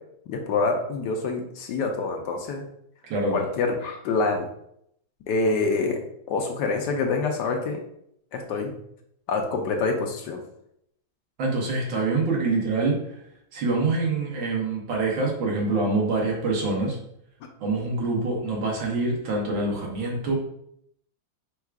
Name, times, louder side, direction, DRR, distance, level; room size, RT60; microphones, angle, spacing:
voice 1, 0.3-2.6 3.3-4.5 5.3-6.0 6.3-7.8 8.3-8.7 9.3-10.4, left 3 dB, 70° left, 3 dB, 1.2 m, -26 dB
voice 2, 3.0-3.4 11.4-13.2 13.5-17.0 17.6-20.3, right 3 dB, 80° right, -2 dB, 1.9 m, -25 dB
4.6 x 2.4 x 4.6 m, 0.72 s
omnidirectional pair, 2.1 m